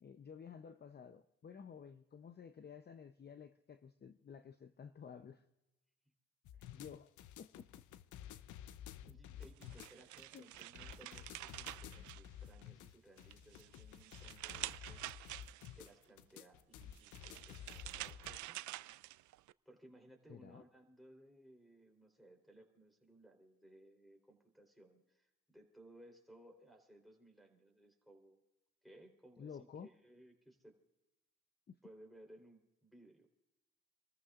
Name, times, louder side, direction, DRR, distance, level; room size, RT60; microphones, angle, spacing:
voice 1, 0.0-5.4 6.6-7.1 7.4-7.7 10.3-10.5 11.9-12.2 20.3-20.6 29.4-29.9 31.7-31.8, left 7 dB, 35° left, 0.7 m, -53 dB
sound 1, 6.4-18.4, left 10 dB, 80° left, 0.7 m, -53 dB
voice 2, 9.0-15.0 15.8-18.6 19.7-28.4 28.8-30.8 31.8-33.3, right 1 dB, ahead, 3.6 m, -62 dB
sound 2, 9.4-12.8 13.2-15.9 16.8-19.5, right 17 dB, 75° right, 0.4 m, -48 dB
28.5 x 14.0 x 2.5 m
cardioid pair, 90°, 30 cm